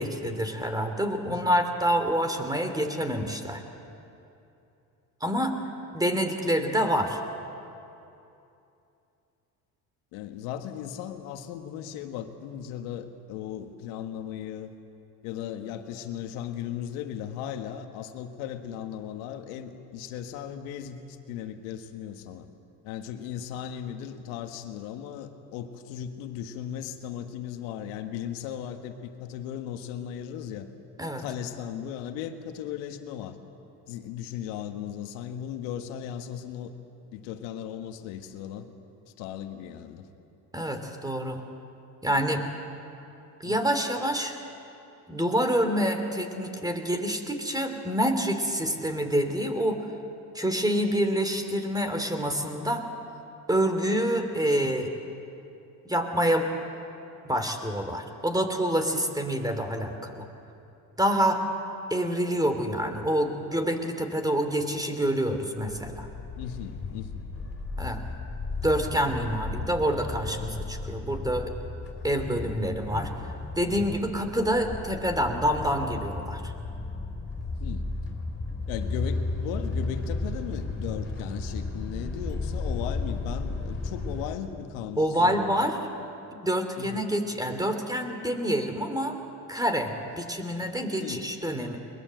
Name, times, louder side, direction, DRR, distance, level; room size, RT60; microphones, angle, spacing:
voice 1, 0.0-3.6 5.2-5.6 5.9-7.2 31.0-31.2 40.5-41.4 42.0-42.4 43.4-44.3 45.1-49.8 50.3-52.9 53.5-54.9 55.8-56.5 57.2-60.2 61.0-61.4 61.9-66.1 67.8-68.0 68.6-71.5 72.0-73.1 73.5-76.5 85.0-85.8 86.3-89.2 89.5-91.8, equal, 10° right, 6 dB, 2.9 m, -27 dB
voice 2, 1.2-1.6 10.1-14.8 15.2-22.5 22.8-30.7 31.2-33.3 33.9-36.7 37.1-38.7 39.2-40.1 43.4-43.6 54.4-54.7 66.4-67.2 77.6-77.9 78.7-85.7 86.8-87.0 91.0-91.3, left 9 dB, 80° left, 7 dB, 1.6 m, -37 dB
sound 1, 65.6-84.4, left 3 dB, 25° left, 5.1 m, -34 dB
22.0 x 20.0 x 7.8 m, 2.7 s
supercardioid pair, 70°, 46 cm